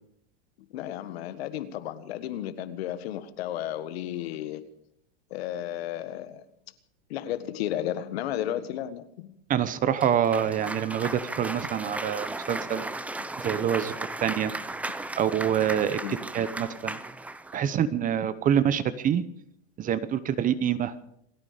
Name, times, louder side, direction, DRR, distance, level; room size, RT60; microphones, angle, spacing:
voice 1, 0.7-4.6 5.3-6.4 7.1-9.4 16.0-16.2, left 12 dB, 70° left, 1.6 m, -33 dB
voice 2, 9.5-12.9 13.4-13.9 14.2-14.5 15.2-16.0 16.3-17.0 17.5-19.2 19.8-21.0, right 9 dB, 25° right, 0.9 m, -26 dB
Cheering / Applause, 10.0-17.7, right 2 dB, 5° right, 0.5 m, -36 dB
28.0 x 9.8 x 5.1 m
supercardioid pair, 135°, 33 cm